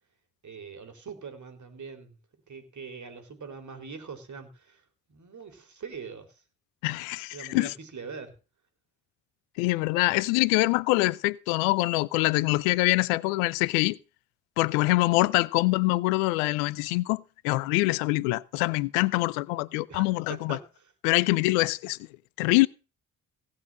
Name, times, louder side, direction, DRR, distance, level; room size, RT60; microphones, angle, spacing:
voice 1, 0.4-2.2 2.5-6.4 7.3-8.4 19.9-20.0 20.3-20.9, right 5 dB, 45° right, 3.7 m, -42 dB
voice 2, 6.8-7.7 9.6-14.0 14.6-20.6 21.0-22.0 22.4-22.7, left 21 dB, 85° left, 0.6 m, -24 dB
17.0 x 5.8 x 7.5 m
hypercardioid pair, 45°, 39 cm